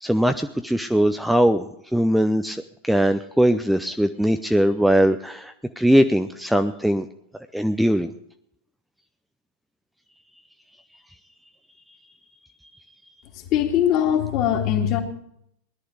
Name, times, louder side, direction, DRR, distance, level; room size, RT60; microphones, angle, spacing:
voice 1, 0.0-1.6 1.9-7.1 7.5-8.1, equal, ahead, 8 dB, 0.6 m, -20 dB
voice 2, 13.3-15.0, left 10 dB, 40° left, 4 dB, 2.2 m, -21 dB
17.5 x 11.5 x 4.9 m, 0.72 s
figure-of-eight pair, 90°, 0 cm